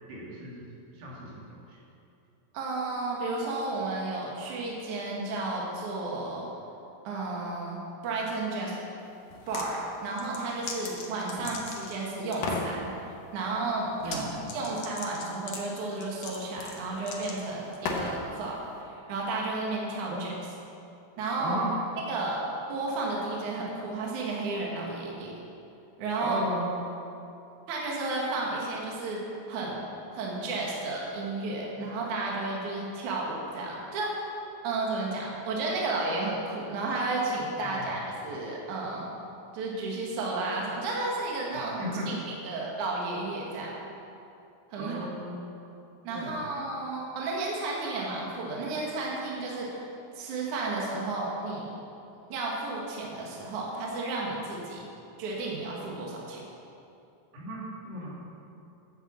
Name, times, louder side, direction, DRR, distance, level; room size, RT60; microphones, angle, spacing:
voice 1, 0.1-0.7 0.9-1.8 11.4-11.5 14.0-14.6 20.1-20.3 21.4-21.8 26.2-26.7 37.6-38.0 41.5-42.1 44.7-45.4 46.1-46.5 57.3-58.1, right 1 dB, 80° right, -5 dB, 4.6 m, -37 dB
voice 2, 2.5-6.5 7.0-8.7 9.5-12.9 13.3-14.3 14.5-20.3 21.2-21.6 22.1-22.4 22.7-25.3 26.0-26.4 27.7-29.2 29.5-29.8 30.1-34.2 34.6-39.0 39.5-42.1 42.4-43.7 44.7-45.1 46.0-49.9 50.1-51.7 52.3-54.8 55.2-56.4, right 2 dB, 55° right, -3 dB, 2.8 m, -32 dB
sound 1, 9.3-9.7 10.1-12.0 12.3-12.7 14.0-14.2 14.5-18.2, left 4 dB, 65° left, 1.6 m, -36 dB
11.0 x 8.1 x 7.4 m, 2.7 s
omnidirectional pair, 4.7 m